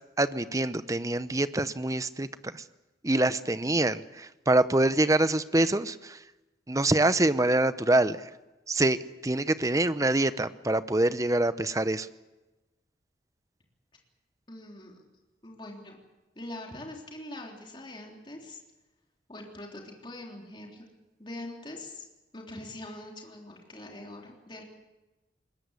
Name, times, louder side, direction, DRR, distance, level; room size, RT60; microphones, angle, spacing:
voice 1, 0.2-2.3 2.5-2.6 3.0-6.2 6.7-8.3 8.7-9.0 9.2-12.1, right 2 dB, 15° right, 13 dB, 0.7 m, -25 dB
voice 2, 14.5-15.0 15.4-16.0 16.4-18.6 19.3-20.9 21.2-22.1 22.3-24.6, left 1 dB, 25° left, 0 dB, 3.5 m, -43 dB
21.5 x 20.5 x 8.2 m, 1.1 s
head